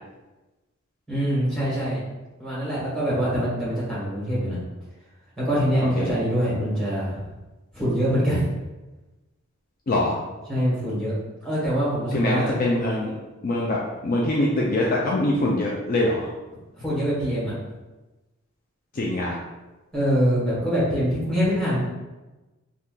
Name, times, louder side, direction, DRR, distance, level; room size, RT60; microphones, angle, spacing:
voice 1, 1.1-2.0 2.4-4.6 5.4-7.2 7.7-8.5 10.5-11.1 11.4-12.6 16.8-17.5 19.9-21.8, equal, 5° left, -9 dB, 1.3 m, -24 dB
voice 2, 9.9-10.2 12.1-13.1 13.4-16.3 18.9-19.4, left 1 dB, 40° left, -3 dB, 0.3 m, -23 dB
2.8 x 2.3 x 3.6 m, 1.1 s
head